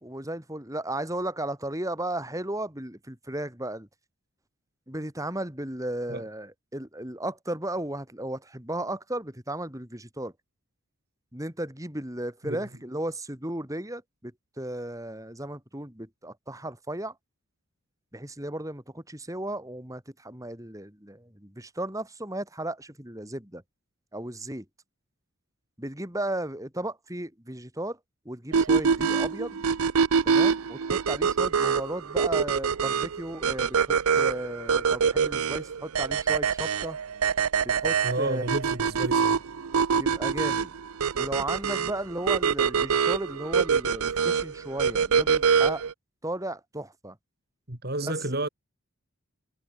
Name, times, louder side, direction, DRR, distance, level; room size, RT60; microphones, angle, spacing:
voice 1, 0.0-3.9 4.9-10.3 11.3-14.3 14.6-17.1 18.1-23.6 24.1-24.7 25.8-28.0 28.3-29.6 30.3-37.0 37.8-38.4 39.9-40.7 41.1-45.8 46.2-47.2 48.0-48.1, right 1 dB, 15° right, 4.0 m, -35 dB
sound 1, 28.5-45.9, right 6 dB, 75° right, 0.6 m, -25 dB
voice 2, 38.0-39.4 47.7-48.5, right 2 dB, 45° right, 3.0 m, -31 dB
head